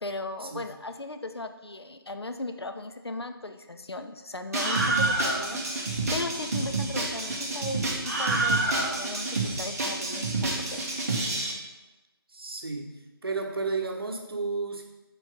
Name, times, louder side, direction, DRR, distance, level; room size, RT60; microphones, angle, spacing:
voice 1, 0.0-10.8, left 2 dB, 85° left, 7 dB, 0.6 m, -37 dB
Screaming, 4.5-11.5, right 2 dB, 40° right, 1.1 m, -28 dB
voice 2, 12.3-14.8, right 3 dB, 65° right, 2 dB, 1.1 m, -32 dB
4.6 x 4.4 x 5.1 m, 1.1 s
figure-of-eight pair, 155°, 13 cm